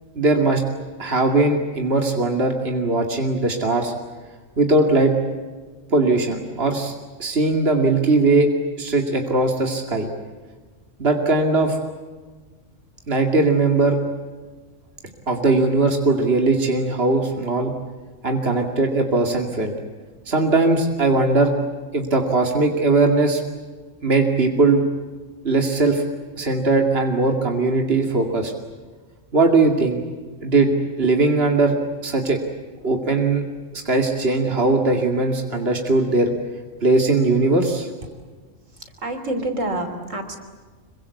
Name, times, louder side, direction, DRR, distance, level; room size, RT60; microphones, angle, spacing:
voice 1, 0.2-0.6 1.0-3.9 4.6-5.1 5.9-6.9 7.2-8.5 8.8-10.1 11.0-11.8 13.1-14.0 15.3-17.7 18.2-19.7 20.3-21.5 21.9-23.4 24.0-24.8 25.4-26.0 26.4-28.5 29.3-30.0 30.4-30.7 31.0-31.7 32.0-32.4 32.8-33.4 33.7-36.3 36.8-37.9, right 3 dB, 50° right, 3 dB, 2.8 m, -19 dB
voice 2, 38.7-40.4, right 1 dB, 80° right, 6 dB, 3.8 m, -28 dB
26.0 x 24.0 x 8.3 m, 1.4 s
omnidirectional pair, 1.3 m